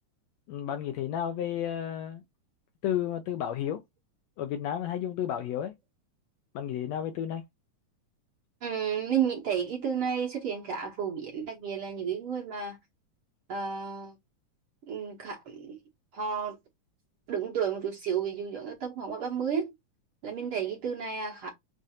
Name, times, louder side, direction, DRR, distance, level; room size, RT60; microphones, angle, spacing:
voice 1, 0.5-2.2 2.8-3.8 4.4-5.7 6.5-7.4, left 10 dB, 75° left, 1.6 m, -32 dB
voice 2, 8.6-12.8 13.5-14.2 14.9-15.8 16.1-16.6 17.3-19.7 20.2-21.5, right 7 dB, 60° right, 1.5 m, -32 dB
7.3 x 2.5 x 2.7 m
omnidirectional pair, 3.5 m